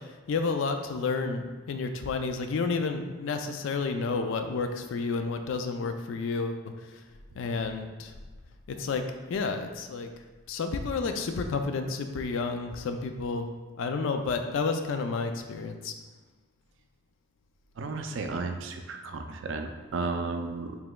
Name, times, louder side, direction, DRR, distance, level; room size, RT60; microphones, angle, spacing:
voice 1, 0.3-6.7 7.4-8.1 8.7-10.1 10.5-13.5 13.8-15.9, left 4 dB, 70° left, 6 dB, 0.3 m, -30 dB
voice 2, 17.8-20.8, right 3 dB, 65° right, 5 dB, 0.4 m, -33 dB
4.8 x 3.4 x 2.2 m, 1.3 s
head